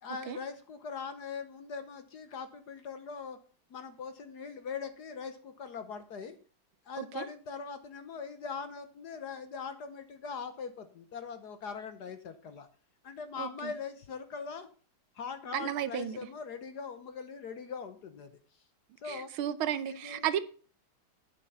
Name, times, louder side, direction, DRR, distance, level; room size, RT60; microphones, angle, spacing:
voice 1, 0.0-3.4 3.7-6.4 6.9-12.7 13.0-14.7 15.1-18.3 19.0-19.3 19.9-20.3, left 5 dB, 60° left, 1.3 m, -41 dB
voice 2, 13.4-13.7 15.5-16.2 19.0-20.4, right 10 dB, 75° right, 1.5 m, -33 dB
10.0 x 7.5 x 5.7 m
omnidirectional pair, 2.4 m